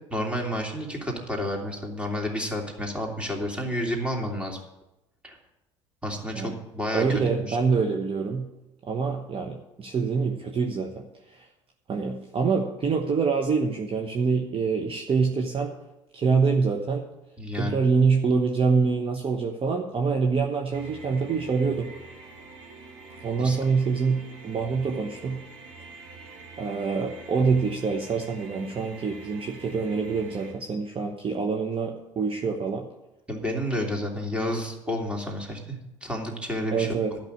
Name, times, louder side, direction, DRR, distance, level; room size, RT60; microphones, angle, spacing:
voice 1, 0.1-4.6 5.2-5.4 6.0-7.6 17.4-17.8 23.4-23.6 33.3-37.2, equal, 5° right, 1 dB, 3.1 m, -30 dB
voice 2, 6.9-8.5 8.8-11.0 11.3-11.5 11.9-15.7 16.1-17.0 17.6-21.9 23.2-25.4 26.6-32.8 36.7-37.1, right 5 dB, 35° right, 2 dB, 1.2 m, -25 dB
sound 1, 20.7-30.5, right 3 dB, 80° right, 3.2 m, -45 dB
12.0 x 5.9 x 8.4 m, 0.94 s
hypercardioid pair, 60°, 16 cm